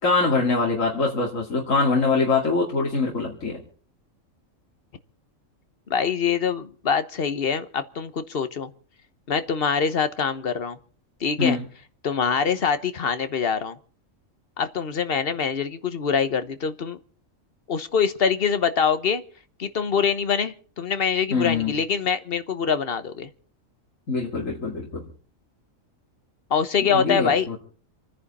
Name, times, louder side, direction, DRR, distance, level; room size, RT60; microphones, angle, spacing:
voice 1, 0.0-3.6 11.4-11.6 21.3-21.7 24.1-25.1 26.8-27.6, left 4 dB, 70° left, 2.8 m, -23 dB
voice 2, 5.9-8.7 9.3-10.8 11.2-11.6 12.0-13.8 14.6-17.0 17.7-19.2 19.6-23.3 26.5-27.5, left 6 dB, 45° left, 1.2 m, -24 dB
28.0 x 10.0 x 4.2 m
omnidirectional pair, 1.4 m